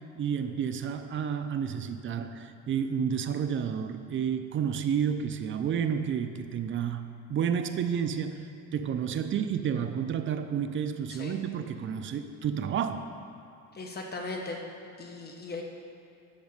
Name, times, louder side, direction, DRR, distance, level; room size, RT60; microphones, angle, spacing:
voice 1, 0.2-13.1, right 7 dB, 40° right, 9 dB, 0.5 m, -30 dB
voice 2, 13.7-14.6 15.0-15.6, left 3 dB, 30° left, 1 dB, 1.1 m, -38 dB
10.5 x 4.1 x 6.6 m, 2.6 s
cardioid pair, 145°, 31 cm